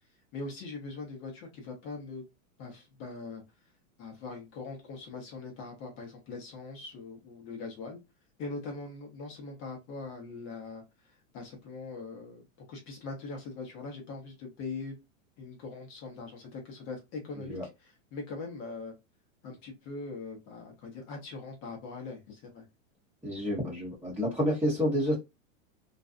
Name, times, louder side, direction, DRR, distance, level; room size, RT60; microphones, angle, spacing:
voice 1, 0.3-2.2 2.6-3.4 4.0-8.0 8.4-10.8 11.3-15.0 15.4-18.9 19.4-22.6, left 3 dB, 30° left, 2 dB, 0.8 m, -41 dB
voice 2, 23.2-25.1, equal, 5° right, -9 dB, 0.8 m, -29 dB
2.5 x 2.2 x 2.4 m, 0.22 s
supercardioid pair, 155°, 40 cm